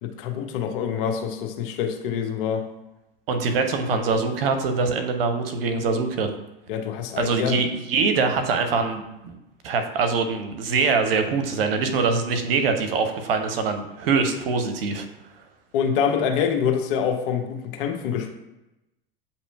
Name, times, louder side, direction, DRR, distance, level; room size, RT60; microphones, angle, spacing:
voice 1, 0.0-2.7 6.7-7.6 15.7-18.4, left 7 dB, 60° left, 4 dB, 0.8 m, -25 dB
voice 2, 3.3-6.3 7.2-9.3 9.6-15.1, right 4 dB, 75° right, 7 dB, 0.7 m, -23 dB
8.2 x 2.8 x 2.3 m, 0.95 s
hypercardioid pair, 80°, 29 cm